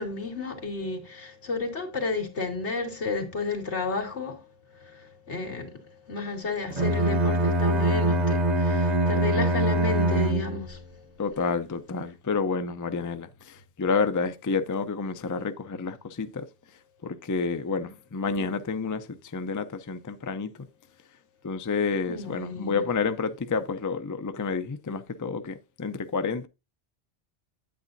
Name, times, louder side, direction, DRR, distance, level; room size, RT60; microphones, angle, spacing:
voice 1, 0.0-4.4 4.7-5.8 6.1-10.8 22.1-22.8, left 3 dB, 90° left, 2.3 m, -32 dB
Bowed string instrument, 6.7-10.8, right 1 dB, 40° right, 1.1 m, -23 dB
voice 2, 11.2-16.5 17.0-20.5 21.4-26.5, left 4 dB, 25° left, 0.4 m, -29 dB
9.1 x 8.6 x 2.6 m
omnidirectional pair, 1.1 m